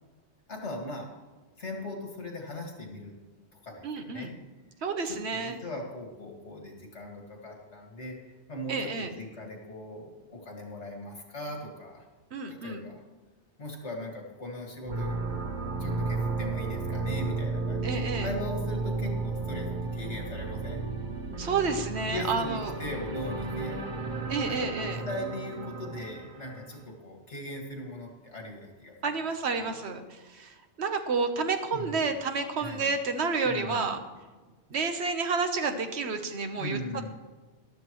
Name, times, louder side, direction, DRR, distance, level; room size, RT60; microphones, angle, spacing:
voice 1, 0.5-1.2 1.6-3.1 3.6-4.3 5.0-8.2 8.5-12.1 12.5-13.0 13.6-15.4 15.8-19.7 19.9-20.8 22.0-24.0 24.5-29.2 29.5-29.7 31.7-32.1 32.6-32.9 33.4-33.9 36.5-37.1, left 1 dB, 90° left, 1 dB, 2.3 m, -39 dB
voice 2, 3.8-4.3 4.8-5.6 8.7-9.1 12.3-12.8 17.8-18.3 21.4-22.7 24.3-25.0 29.0-34.0 34.7-36.8, right 4 dB, 75° right, 7 dB, 1.3 m, -30 dB
sound 1, 14.8-26.8, right 3 dB, 50° right, 0.9 m, -33 dB
14.0 x 12.0 x 3.1 m, 1.3 s
omnidirectional pair, 1.1 m